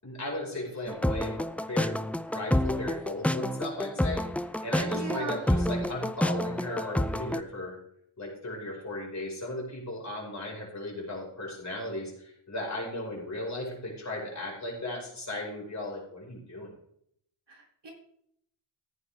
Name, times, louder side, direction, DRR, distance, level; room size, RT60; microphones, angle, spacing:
voice 1, 0.0-2.0 2.3-7.8 8.2-16.7, left 1 dB, 35° left, -2 dB, 5.4 m, -36 dB
sound 1, 0.9-7.4, left 1 dB, 5° left, 0.4 m, -29 dB
voice 2, 4.9-5.4 17.5-17.9, right 3 dB, 55° right, -1 dB, 3.5 m, -37 dB
15.0 x 9.4 x 3.5 m, 0.69 s
wide cardioid pair, 100°, 50 cm